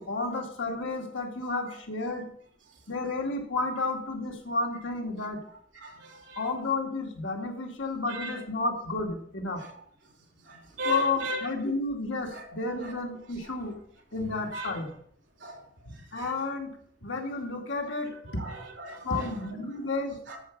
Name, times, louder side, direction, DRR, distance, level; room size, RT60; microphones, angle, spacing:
voice 1, 0.0-2.3 2.9-5.4 6.4-9.6 10.9-13.7 14.1-14.9 16.1-16.7 17.0-18.4 19.0-20.2, left 3 dB, 85° left, 1 dB, 2.4 m, -31 dB
voice 2, 5.7-6.5 8.1-8.4 9.6-9.8 10.3-11.5 12.3-12.5 12.8-12.9 13.4-13.5 14.3-14.7 15.4-16.3 18.0-19.8 20.3-20.5, right 1 dB, 70° right, 1 dB, 2.9 m, -38 dB
12.5 x 4.9 x 7.2 m, 0.65 s
head